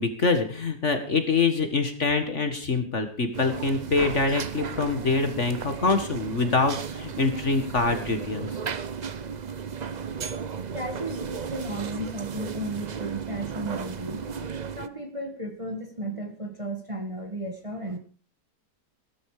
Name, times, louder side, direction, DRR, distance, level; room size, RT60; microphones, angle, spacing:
voice 1, 0.0-8.5, left 4 dB, 45° left, 7 dB, 2.0 m, -25 dB
sound 1, 3.3-14.9, right 6 dB, 45° right, 0.5 m, -34 dB
voice 2, 10.7-14.3 14.8-18.0, right 1 dB, 20° right, 4 dB, 1.9 m, -34 dB
16.5 x 13.5 x 5.0 m, 0.40 s
omnidirectional pair, 1.8 m